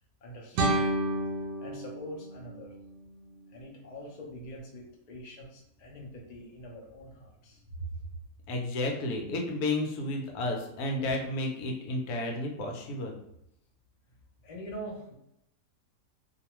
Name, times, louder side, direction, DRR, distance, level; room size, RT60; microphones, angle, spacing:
voice 1, 0.2-1.0 1.6-2.7 3.5-7.6 14.4-15.1, equal, 45° left, -1 dB, 0.5 m, -44 dB
sound 1, 0.5-3.6, right 1 dB, 75° right, 0.9 m, -31 dB
voice 2, 8.5-13.1, left 2 dB, 80° left, 1 dB, 1.2 m, -32 dB
2.6 x 2.3 x 2.9 m, 0.80 s
omnidirectional pair, 1.6 m